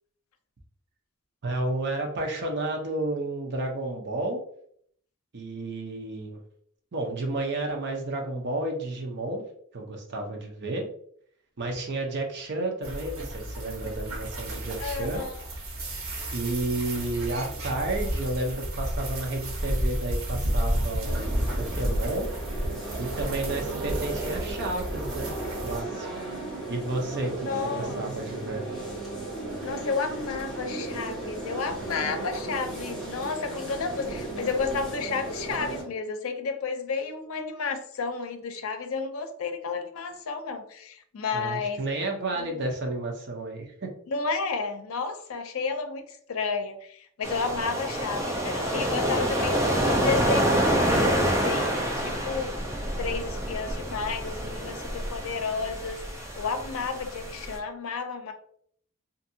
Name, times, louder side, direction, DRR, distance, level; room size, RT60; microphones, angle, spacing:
voice 1, 1.4-4.4 5.3-6.4 6.9-9.4 9.7-10.9 11.6-15.2 16.3-22.3 23.0-25.3 25.6-26.3 26.7-28.6 41.3-43.9, right 2 dB, 55° right, 1 dB, 0.7 m, -31 dB
sound 1, 12.8-25.8, equal, 85° right, 0.8 m, -32 dB
voice 2, 14.8-15.4 27.4-28.0 29.6-41.8 42.4-42.6 44.1-52.5 53.0-58.3, left 4 dB, 90° left, 7 dB, 0.5 m, -32 dB
sound 2, 21.0-35.8, right 2 dB, ahead, 1.4 m, -35 dB
sound 3, 47.2-57.6, equal, 15° right, 0.6 m, -27 dB
2.6 x 2.6 x 2.6 m, 0.63 s
head